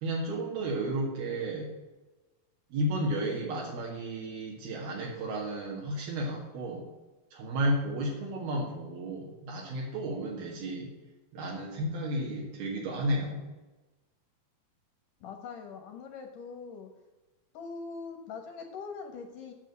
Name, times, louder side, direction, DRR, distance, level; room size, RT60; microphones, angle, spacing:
voice 1, 0.0-1.7 2.7-6.8 7.3-10.9 11.3-13.4, right 1 dB, 80° right, -2 dB, 3.8 m, -32 dB
voice 2, 15.2-16.9 17.5-19.5, left 5 dB, 65° left, 4 dB, 2.6 m, -42 dB
8.6 x 7.3 x 8.0 m, 1.1 s
omnidirectional pair, 4.4 m